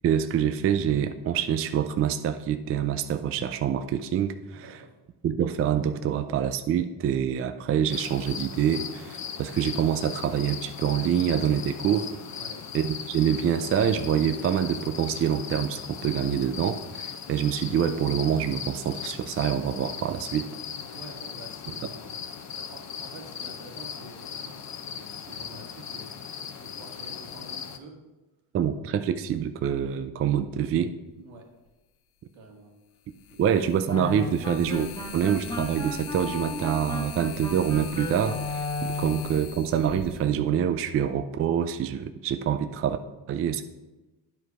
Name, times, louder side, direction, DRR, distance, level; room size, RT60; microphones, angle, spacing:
voice 1, 0.0-4.8 5.2-12.1 12.7-20.5 28.5-30.9 33.4-43.0 43.3-43.6, right 9 dB, 30° right, 9 dB, 0.3 m, -26 dB
voice 2, 4.5-5.0 12.3-12.6 20.9-22.2 22.5-26.1 26.6-28.0 31.2-31.5 32.3-32.7 33.3-33.4, right 2 dB, 70° right, 1 dB, 2.0 m, -47 dB
sound 1, 7.9-27.8, left 7 dB, 35° left, 0.7 m, -38 dB
sound 2, 31.7-31.8 33.1-41.0, left 8 dB, 75° left, 1.0 m, -42 dB
sound 3, 33.9-39.4, left 3 dB, 10° left, 1.3 m, -34 dB
9.1 x 4.7 x 4.8 m, 1.1 s
cardioid pair, 105°, 48 cm